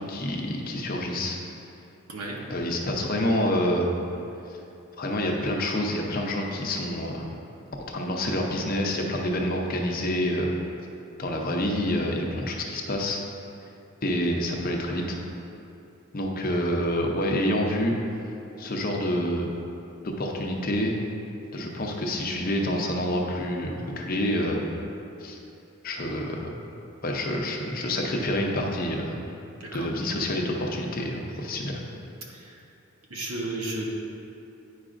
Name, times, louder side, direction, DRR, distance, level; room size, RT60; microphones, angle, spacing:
voice 1, 0.0-1.4 2.5-3.9 5.0-7.2 7.9-10.6 11.2-13.2 14.0-15.2 16.1-17.9 18.6-19.5 20.0-21.0 21.5-24.6 25.2-25.4 25.8-26.5 27.0-29.2 29.7-31.8, left 1 dB, 40° left, 0 dB, 0.6 m, -27 dB
voice 2, 33.1-33.8, right 2 dB, 85° right, -2 dB, 1.0 m, -32 dB
9.4 x 4.9 x 2.5 m, 2.7 s
head